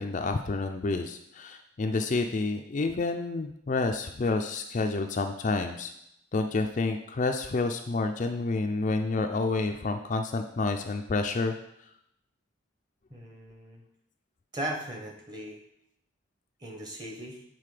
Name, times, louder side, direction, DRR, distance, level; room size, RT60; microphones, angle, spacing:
voice 1, 0.0-5.9 6.3-11.5, left 3 dB, 40° left, 5 dB, 0.4 m, -29 dB
voice 2, 13.1-13.8 14.5-15.6 16.6-17.4, right 1 dB, 20° right, 1 dB, 1.0 m, -38 dB
7.6 x 4.0 x 4.9 m, 0.76 s
head